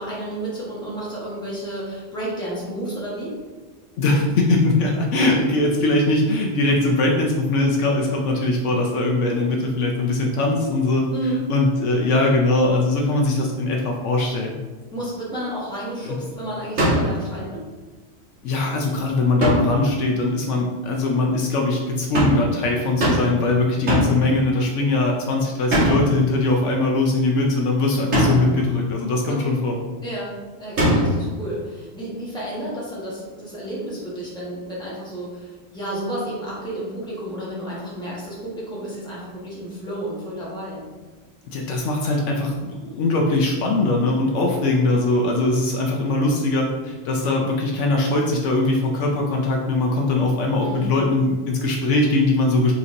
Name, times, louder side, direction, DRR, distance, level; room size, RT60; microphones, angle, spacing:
voice 1, 0.0-3.4 11.1-11.5 14.9-17.6 29.3-29.5 30.0-40.8 50.6-51.0, right 1 dB, 5° left, -7 dB, 1.2 m, -31 dB
voice 2, 4.0-11.0 11.5-14.5 16.0-16.1 18.4-29.8 41.5-52.7, left 2 dB, 70° left, 0 dB, 0.9 m, -21 dB
sound 1, 16.8-17.2 19.4-19.8 22.1-22.5 23.0-23.4 23.9-24.3 25.7-26.2 28.1-28.6 30.8-31.3, equal, 75° right, 1.8 m, -20 dB
4.4 x 4.0 x 2.6 m, 1.3 s
omnidirectional pair, 1.3 m